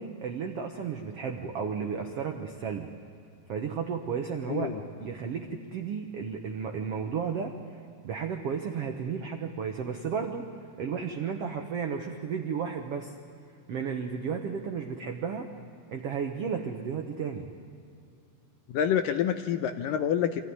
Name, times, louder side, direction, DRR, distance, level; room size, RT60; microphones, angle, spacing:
voice 1, 0.0-2.9 3.5-4.7 5.0-7.5 8.0-10.4 10.8-13.1 13.7-15.5 15.9-17.5, right 6 dB, 80° right, 3 dB, 1.3 m, -33 dB
voice 2, 4.5-4.8 18.7-20.4, left 9 dB, 75° left, 8 dB, 2.2 m, -27 dB
26.0 x 15.0 x 9.6 m, 2.5 s
omnidirectional pair, 4.4 m